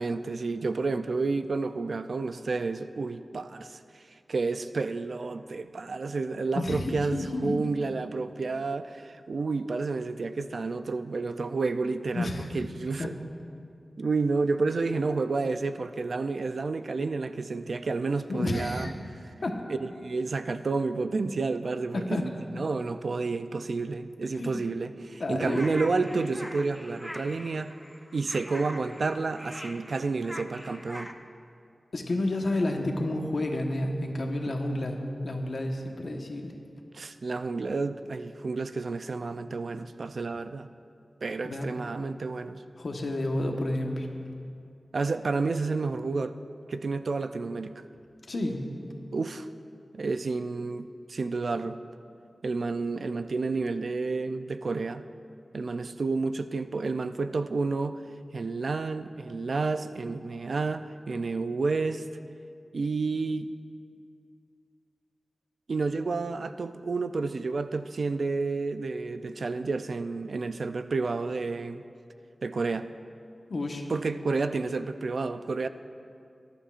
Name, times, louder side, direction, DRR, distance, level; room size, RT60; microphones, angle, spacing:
voice 1, 0.0-4.0 4.3-13.1 14.0-18.9 19.8-22.3 22.6-27.7 28.1-31.1 36.9-40.7 41.2-42.6 44.9-46.4 46.7-47.7 49.1-49.5 49.9-51.8 52.4-55.0 55.5-58.0 58.3-62.0 62.7-63.5 65.7-71.8 72.4-72.9 73.9-75.7, right 3 dB, 70° right, 10 dB, 0.4 m, -30 dB
voice 2, 6.5-7.6 12.1-12.5 13.0-13.1 18.3-18.9 19.4-19.6 21.9-22.3 24.3-24.6 25.2-25.6 31.9-36.5 41.4-41.7 42.8-44.1 48.3-48.7 73.5-73.8, left 1 dB, 65° left, 2 dB, 1.2 m, -30 dB
sound 1, 25.4-31.1, equal, 5° left, 0.6 m, -43 dB
19.5 x 11.5 x 2.5 m, 2.5 s
wide cardioid pair, 90°, 0 cm